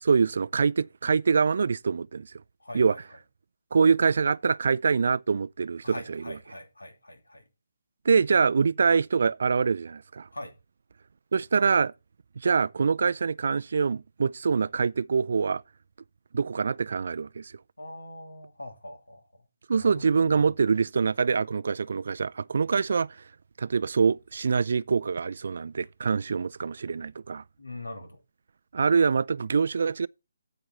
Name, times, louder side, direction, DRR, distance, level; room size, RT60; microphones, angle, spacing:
voice 1, 0.0-2.3 2.7-3.0 3.7-6.4 8.0-10.3 11.3-11.9 12.4-15.6 16.3-17.5 19.7-23.1 23.6-27.4 28.7-30.1, right 5 dB, 55° right, 0.4 m, -24 dB
voice 2, 2.6-3.0 5.8-7.4 10.3-10.5 17.8-19.3 19.7-20.5 27.6-28.2, left 1 dB, 80° left, 2.6 m, -42 dB
9.1 x 7.7 x 4.0 m
figure-of-eight pair, 145°, 0 cm